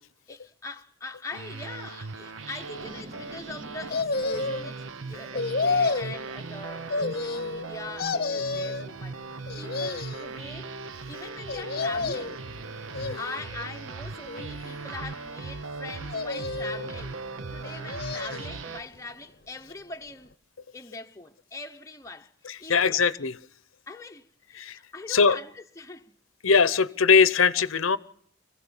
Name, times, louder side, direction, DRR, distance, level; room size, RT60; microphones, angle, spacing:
voice 1, 0.3-10.7 11.1-12.4 13.2-20.3 20.7-23.0 23.9-26.1, left 3 dB, 15° left, 0.8 m, -42 dB
sound 1, 1.3-18.8, right 4 dB, 80° right, 0.9 m, -39 dB
sound 2, 2.5-8.9 9.7-11.5 11.9-17.2 18.2-19.3, right 2 dB, 45° right, 1.7 m, -53 dB
sound 3, 3.9-4.7 5.3-6.2 6.9-7.7 8.0-8.9 9.5-10.3 11.5-12.4 12.9-13.6 14.3-15.1 16.1-16.9 17.6-18.6 18.9-19.0, left 3 dB, 45° left, 0.8 m, -30 dB
voice 2, 22.4-23.4 24.5-24.8 25.1-25.4 26.4-28.0, left 5 dB, 90° left, 0.8 m, -21 dB
25.0 x 16.0 x 7.1 m
head